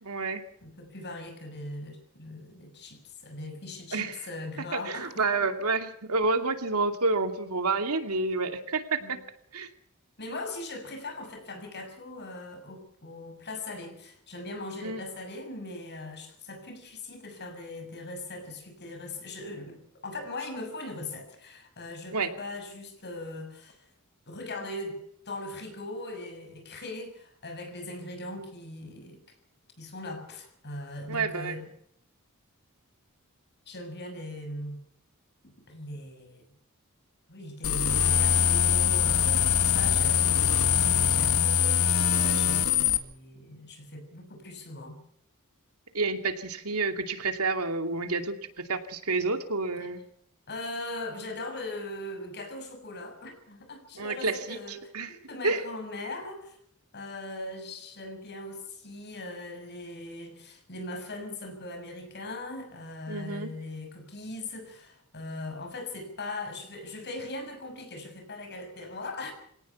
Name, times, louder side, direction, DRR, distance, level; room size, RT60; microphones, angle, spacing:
voice 1, 0.0-0.4 3.9-4.2 4.7-9.2 9.5-9.7 14.8-15.0 22.1-22.3 31.1-31.6 45.9-50.0 54.0-54.6 54.9-55.1 55.4-55.6 63.1-63.5, right 3 dB, 80° right, 7 dB, 2.5 m, -29 dB
voice 2, 0.6-5.5 9.0-9.2 10.2-23.9 24.3-29.2 29.8-31.7 33.7-34.9 35.4-36.4 37.3-45.0 49.8-49.9 50.5-56.6 56.9-69.3, left 2 dB, 50° left, 6 dB, 6.6 m, -40 dB
sound 1, 37.6-43.0, left 8 dB, 70° left, 1.9 m, -23 dB
24.5 x 18.0 x 5.9 m, 0.71 s
head